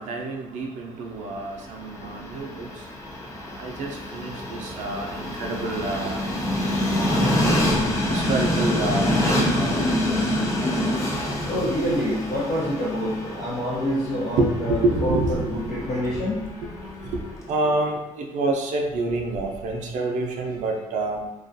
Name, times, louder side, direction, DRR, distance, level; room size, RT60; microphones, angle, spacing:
voice 1, 0.0-2.7 3.6-6.3 6.9-7.4 8.1-9.8 14.4-15.7 15.9-16.0 17.1-17.2 17.5-21.2, right 2 dB, 65° right, 2 dB, 0.4 m, -27 dB
Train, 1.5-17.6, left 1 dB, 25° left, 0.6 m, -26 dB
voice 2, 11.4-16.5, equal, 70° left, -9 dB, 0.8 m, -27 dB
2.3 x 2.3 x 2.6 m, 0.94 s
cardioid pair, 100°, 13 cm